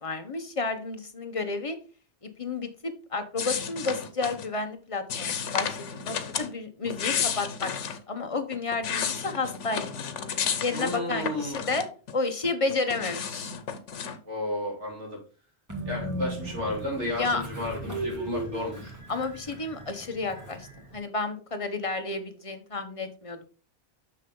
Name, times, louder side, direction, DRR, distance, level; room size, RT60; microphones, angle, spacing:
voice 1, 0.0-1.8 2.2-10.1 10.6-11.9 12.1-13.5 17.2-17.4 19.1-23.4, left 3 dB, 30° left, 7 dB, 1.0 m, -31 dB
sound 1, 3.4-4.5 5.1-6.5 6.9-8.0 8.5-12.1 12.4-14.2, left 7 dB, 85° left, 1.2 m, -32 dB
voice 2, 10.7-11.6 14.2-15.2 15.9-18.9, left 1 dB, 80° right, -2 dB, 3.8 m, -32 dB
Train, 15.7-21.0, right 1 dB, 15° right, 1.8 m, -37 dB
6.6 x 6.3 x 3.7 m, 0.38 s
omnidirectional pair, 1.2 m